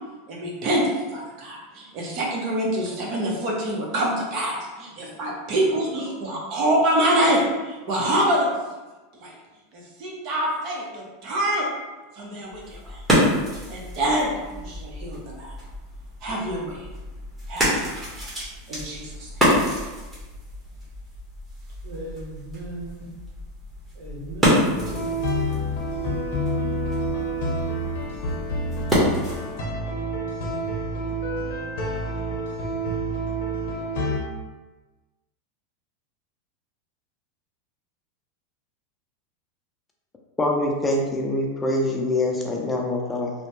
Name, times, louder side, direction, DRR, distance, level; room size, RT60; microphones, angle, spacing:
voice 1, 0.3-8.5 9.2-9.4 9.7-11.7 12.1-13.0 13.5-15.5 16.2-16.9 17.5-18.3 18.7-19.3, right 1 dB, 50° right, -2 dB, 0.8 m, -26 dB
sound 1, 12.5-29.6, equal, 10° right, 1.1 m, -28 dB
voice 2, 21.8-23.2 23.9-25.2, right 1 dB, 75° right, -4 dB, 1.0 m, -37 dB
sound 2, 24.8-34.2, equal, 70° left, 0.7 m, -28 dB
voice 3, 40.4-43.3, left 1 dB, 15° left, -1 dB, 0.4 m, -24 dB
3.0 x 2.1 x 3.0 m, 1.2 s
supercardioid pair, 115°, 0 cm